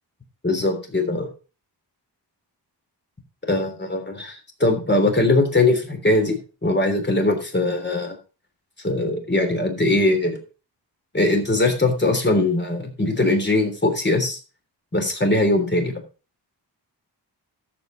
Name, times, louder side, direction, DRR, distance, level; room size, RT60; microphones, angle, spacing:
voice 1, 0.4-1.3 3.4-8.2 8.8-10.4 11.1-14.4 14.9-16.0, left 2 dB, 25° left, 4 dB, 3.4 m, -21 dB
13.0 x 7.7 x 4.0 m, 0.33 s
wide cardioid pair, 110°, 42 cm